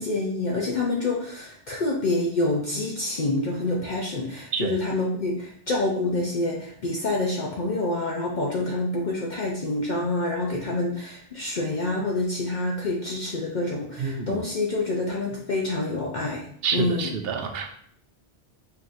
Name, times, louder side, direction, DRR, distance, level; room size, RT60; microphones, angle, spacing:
voice 1, 0.0-16.5 16.7-17.2, left 2 dB, 50° left, -3 dB, 0.7 m, -27 dB
voice 2, 14.0-14.4 16.6-17.8, right 6 dB, 70° right, 4 dB, 0.8 m, -28 dB
5.1 x 2.8 x 2.5 m, 0.64 s
omnidirectional pair, 1.1 m